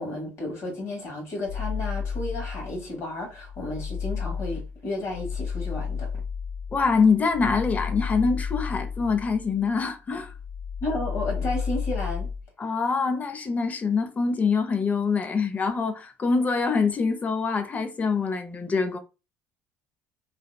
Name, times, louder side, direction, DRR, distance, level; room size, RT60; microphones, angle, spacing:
voice 1, 0.0-6.1 10.8-12.3, left 2 dB, 60° left, 1.4 m, -32 dB
sound 1, 1.5-2.9 3.3-9.8 10.1-12.4, left 6 dB, 80° left, 0.6 m, -32 dB
voice 2, 6.7-10.3 12.6-19.0, left 4 dB, 30° left, 0.6 m, -24 dB
2.7 x 2.1 x 2.3 m
supercardioid pair, 85°, 5 cm